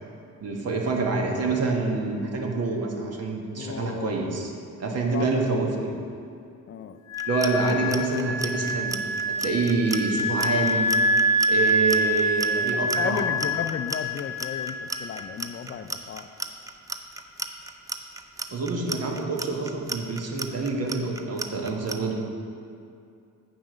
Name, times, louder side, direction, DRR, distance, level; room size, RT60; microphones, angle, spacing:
voice 1, 0.4-4.5 4.8-5.9 7.3-9.0 9.4-10.9 11.5-13.2 18.5-22.2, right 3 dB, 55° right, 0 dB, 1.4 m, -27 dB
voice 2, 3.6-4.2 4.8-5.4 6.7-7.0 12.9-16.3, left 7 dB, 40° left, 10 dB, 0.5 m, -34 dB
Wind instrument woodwind instrument, 7.1-15.4, equal, 80° left, 0.8 m, -26 dB
Clock, 7.1-22.0, right 3 dB, 10° right, 0.5 m, -34 dB
7.6 x 6.0 x 5.2 m, 2.5 s
cardioid pair, 90°, 30 cm